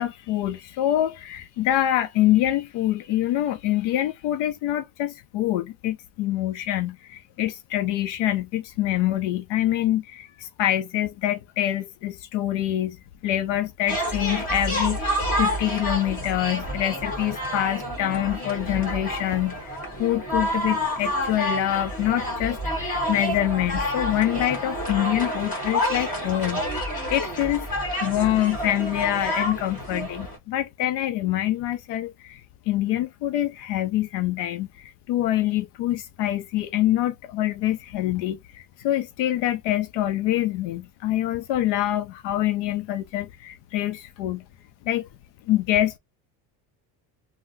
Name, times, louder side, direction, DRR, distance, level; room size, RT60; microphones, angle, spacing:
voice 1, 0.0-13.0 13.2-27.7 28.0-32.4 32.7-44.4 44.9-45.1 45.5-46.0, left 13 dB, 65° left, 0.5 m, -25 dB
sound 1, 13.9-30.4, equal, 15° left, 1.5 m, -29 dB
3.6 x 2.1 x 2.5 m
cardioid pair, 135°, 47 cm